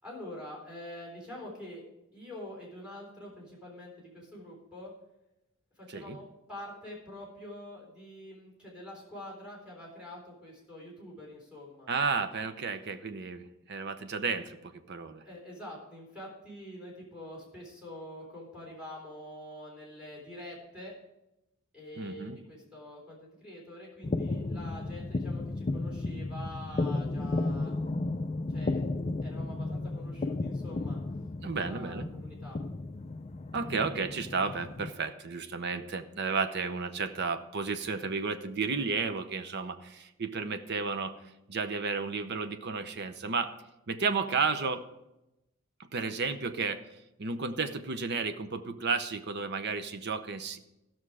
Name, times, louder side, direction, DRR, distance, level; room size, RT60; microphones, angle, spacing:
voice 1, 0.0-1.8 2.1-4.9 5.8-11.9 15.2-21.0 21.7-27.7 28.5-28.8 29.2-31.0 31.5-32.6, left 1 dB, 5° right, -3 dB, 3.9 m, -46 dB
voice 2, 11.9-15.2 22.0-22.4 31.4-32.1 33.5-43.5 43.9-44.8 45.8-50.6, right 4 dB, 55° right, 10 dB, 0.7 m, -33 dB
sound 1, 24.0-34.9, left 2 dB, 30° left, 0.4 m, -34 dB
15.5 x 6.2 x 4.8 m, 0.92 s
head